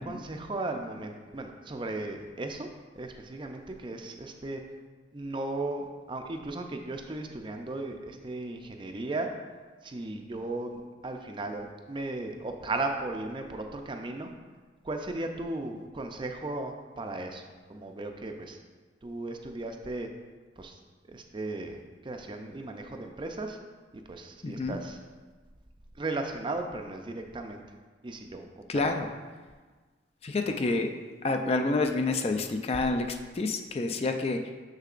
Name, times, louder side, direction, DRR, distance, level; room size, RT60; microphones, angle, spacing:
voice 1, 0.0-2.7 2.9-4.6 5.1-9.3 9.8-14.3 14.8-17.4 17.7-18.6 19.0-20.1 20.6-20.7 21.1-23.6 24.1-25.0 26.0-27.6 28.0-28.5, right 2 dB, 25° right, 4 dB, 0.4 m, -36 dB
voice 2, 24.4-24.8 28.7-29.1 30.2-30.9 31.2-34.5, left 3 dB, 35° left, 5 dB, 0.4 m, -28 dB
6.7 x 6.6 x 2.5 m, 1.4 s
head